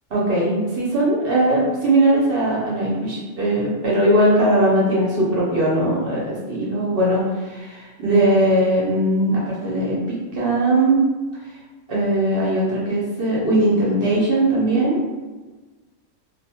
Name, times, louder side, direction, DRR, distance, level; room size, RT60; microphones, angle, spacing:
voice 1, 0.1-11.0 11.9-15.0, right 1 dB, 55° right, -5 dB, 0.8 m, -19 dB
2.4 x 2.3 x 2.8 m, 1.2 s
omnidirectional pair, 1.3 m